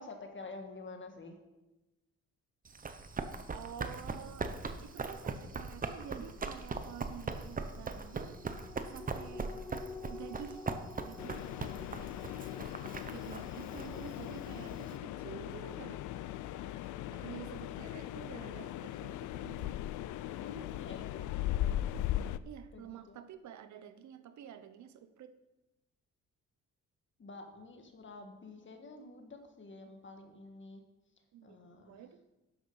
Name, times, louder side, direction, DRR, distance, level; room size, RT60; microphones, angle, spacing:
voice 1, 0.0-1.4 16.5-17.2 20.4-21.3 22.7-23.2 27.2-30.8 31.4-32.0, left 3 dB, 40° left, 4 dB, 1.9 m, -49 dB
Run, 2.7-14.9, right 4 dB, 30° right, 1.0 m, -40 dB
voice 2, 3.5-4.5 4.8-8.4 8.8-9.6 10.1-10.6 11.0-11.5 13.1-16.0 17.1-19.8 22.4-25.3 31.3-32.2, right 9 dB, 70° right, 11 dB, 0.9 m, -49 dB
sound 1, 8.0-18.8 19.2-19.3, left 4 dB, 10° left, 0.7 m, -51 dB
sound 2, 11.2-22.4, left 13 dB, 80° left, 0.5 m, -39 dB
11.5 x 7.0 x 5.6 m, 1.0 s
cardioid pair, 90°, 30 cm